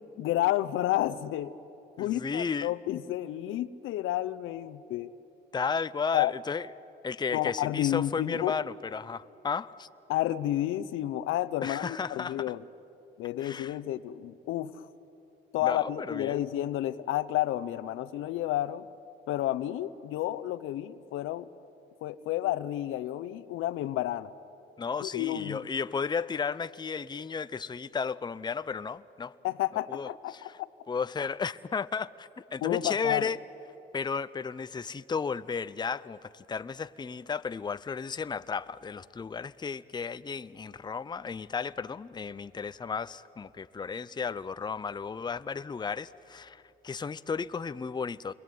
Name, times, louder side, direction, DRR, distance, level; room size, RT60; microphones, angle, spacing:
voice 1, 0.2-1.5 2.0-5.1 6.1-6.3 7.3-8.6 10.1-12.6 13.2-14.9 15.5-18.9 19.3-21.5 22.0-24.3 25.0-25.6 29.4-30.5 32.6-33.3, left 14 dB, 90° left, 14 dB, 0.8 m, -30 dB
voice 2, 2.0-2.7 5.5-6.7 7.0-9.9 11.6-12.5 13.4-13.8 15.6-16.4 24.8-29.3 29.9-30.6 30.9-33.4 33.9-48.3, left 5 dB, 20° left, 14 dB, 0.6 m, -34 dB
28.0 x 22.5 x 9.3 m, 2.8 s
cardioid pair, 90°, 20 cm